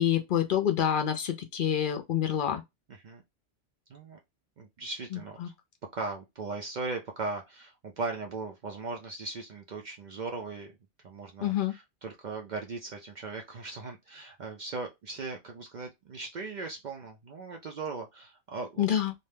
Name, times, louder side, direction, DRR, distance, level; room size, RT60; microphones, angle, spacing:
voice 1, 0.0-2.6 5.1-5.5 11.4-11.7 18.8-19.1, left 10 dB, 60° left, 0.6 m, -27 dB
voice 2, 4.6-5.4 5.9-10.7 11.0-18.9, right 3 dB, 65° right, 0.4 m, -38 dB
2.6 x 2.1 x 3.2 m
omnidirectional pair, 1.3 m